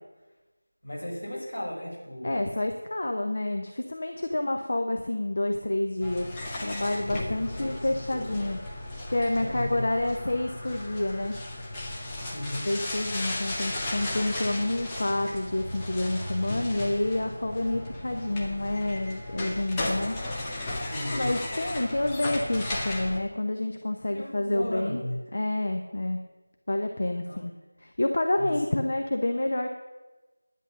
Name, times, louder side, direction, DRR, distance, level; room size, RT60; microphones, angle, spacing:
voice 1, 0.8-2.4 7.3-7.7 9.4-9.8 12.3-12.7 20.9-21.3 24.1-25.2 27.2-27.4 28.4-28.5, left 1 dB, 60° left, -2 dB, 5.4 m, -35 dB
voice 2, 2.2-6.3 6.6-8.6 9.1-11.3 12.6-20.1 21.1-25.0 25.3-26.2 26.7-27.5 27.8-29.7, left 1 dB, 40° left, 4 dB, 0.9 m, -28 dB
sound 1, 6.0-23.2, left 1 dB, 10° left, 1.0 m, -35 dB
11.0 x 9.3 x 6.9 m, 1.2 s
figure-of-eight pair, 170°, 0 cm